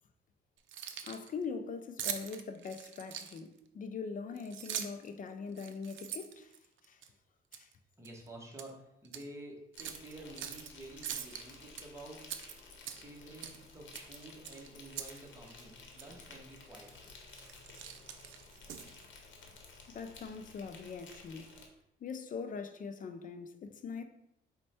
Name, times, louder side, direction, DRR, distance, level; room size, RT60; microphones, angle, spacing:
Keys jangling, 0.6-1.3 2.0-3.6 4.4-5.1 5.5-7.1 7.5-7.7 8.0-8.7 9.0-9.2 9.8-10.7 11.0-11.8 12.2-13.2 13.4-13.6 13.9-15.2 15.5-15.6 16.0-16.1 16.7-17.0 17.3-19.0, right 9 dB, 75° right, 0.4 m, -42 dB
voice 1, 1.0-6.5 6.9-7.0 7.5-7.7 19.9-21.6 22.0-24.0, left 5 dB, 45° left, 0.4 m, -42 dB
voice 2, 8.0-12.2 12.9-17.1, right 1 dB, 15° right, 1.0 m, -50 dB
Insect, 9.7-21.7, left 3 dB, 70° left, 0.9 m, -54 dB
4.3 x 2.2 x 4.2 m
cardioid pair, 90°, 20 cm